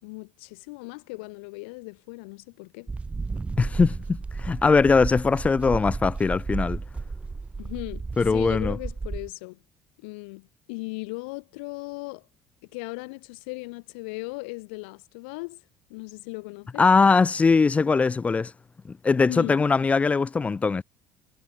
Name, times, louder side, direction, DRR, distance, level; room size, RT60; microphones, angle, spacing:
voice 1, 0.0-2.9 7.6-9.6 10.0-12.3 12.6-15.6 15.9-16.8 19.3-19.6, left 28 dB, 85° left, 4.7 m, -37 dB
sound 1, 2.9-9.3, right 4 dB, 20° right, 1.6 m, -33 dB
voice 2, 3.6-6.8 8.2-8.8 16.8-18.5 18.8-20.8, left 4 dB, 25° left, 0.6 m, -21 dB
supercardioid pair, 85°, 6 cm